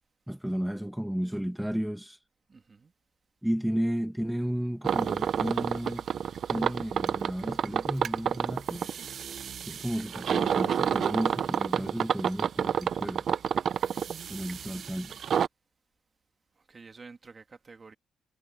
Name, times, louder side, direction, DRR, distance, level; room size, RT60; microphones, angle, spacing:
voice 1, 0.3-2.2 3.4-6.0 6.5-8.9 9.6-13.3 14.3-15.2, equal, 5° right, 1.3 m, -33 dB
voice 2, 2.5-2.9 16.7-17.9, right 4 dB, 30° right, 1.8 m, -50 dB
sound 1, 4.8-15.5, right 8 dB, 50° right, 0.7 m, -29 dB
cardioid pair, 135°, 0 cm